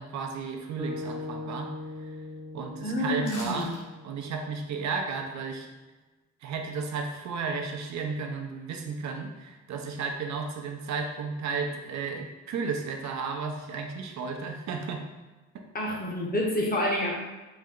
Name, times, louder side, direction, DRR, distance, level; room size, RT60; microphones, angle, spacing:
voice 1, 0.0-1.7 2.1-2.2 2.5-3.7 4.0-5.7 6.4-15.1 15.5-15.6, right 4 dB, 65° right, 3 dB, 0.7 m, -33 dB
sound 1, 0.8-5.0, left 1 dB, 15° right, 0.5 m, -40 dB
voice 2, 2.8-3.8 15.7-17.1, left 1 dB, 30° left, -1 dB, 0.9 m, -28 dB
sound 2, 3.2-3.8 4.2-4.3, left 2 dB, 75° left, 1.2 m, -43 dB
4.2 x 2.2 x 3.7 m, 1.2 s
cardioid pair, 90°, 30 cm